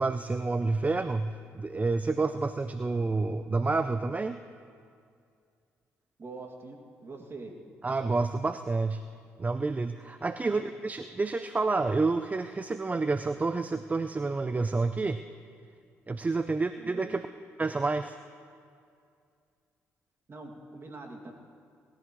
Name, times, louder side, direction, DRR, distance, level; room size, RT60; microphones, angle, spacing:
voice 1, 0.0-4.4 7.8-9.0 9.4-15.2 16.1-17.3 17.6-18.2, right 3 dB, 25° right, 10 dB, 0.5 m, -29 dB
voice 2, 6.2-7.5 10.4-10.6 16.8-17.1 20.3-21.3, right 3 dB, 40° right, 1 dB, 2.4 m, -44 dB
19.5 x 14.0 x 3.1 m, 2.3 s
supercardioid pair, 55°, 6 cm